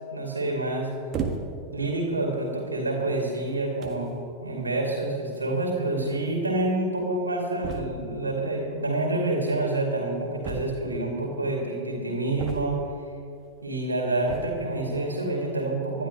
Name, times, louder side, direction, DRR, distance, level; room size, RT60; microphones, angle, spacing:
voice 1, 0.1-0.9 1.7-4.1 4.4-12.8 13.6-16.1, right 2 dB, 80° right, -1 dB, 2.8 m, -27 dB
sound 1, 1.1-1.7 2.5-2.7 3.5-3.6 3.8-4.1 5.3-5.4 5.7-5.8 6.0-6.1 7.6-8.2 10.4-11.1 12.4-13.0 14.2-14.7, right 5 dB, 30° right, 1.6 m, -34 dB
26.0 x 11.5 x 3.2 m, 2.6 s
figure-of-eight pair, 90°, 0 cm